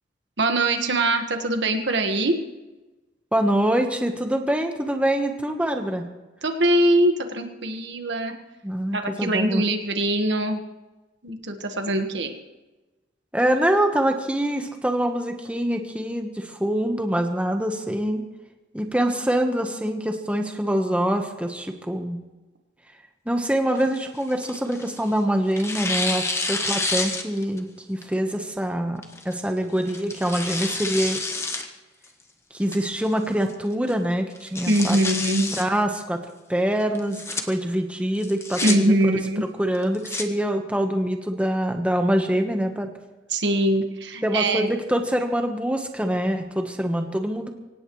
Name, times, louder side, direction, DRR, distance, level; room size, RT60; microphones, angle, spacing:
voice 1, 0.4-2.4 6.4-8.3 8.9-10.6 11.2-12.3 34.7-35.5 38.6-39.4 43.3-44.7, right 1 dB, 65° right, 5 dB, 1.5 m, -22 dB
voice 2, 3.3-6.1 8.6-9.6 13.3-18.2 18.7-22.2 23.3-31.2 32.5-35.0 35.5-36.2 36.5-42.9 44.2-47.5, right 1 dB, 5° right, 4 dB, 1.1 m, -25 dB
Tearing, 23.7-25.1 25.6-27.6 28.0-28.1 29.0-29.3 29.9-31.7 32.0-32.1 32.7-33.1 33.5-33.6 33.9-34.0 34.4-35.6 36.9-37.4 38.2-38.7 39.7-40.2, left 3 dB, 15° left, 1.2 m, -29 dB
24.5 x 18.0 x 3.2 m, 1.1 s
head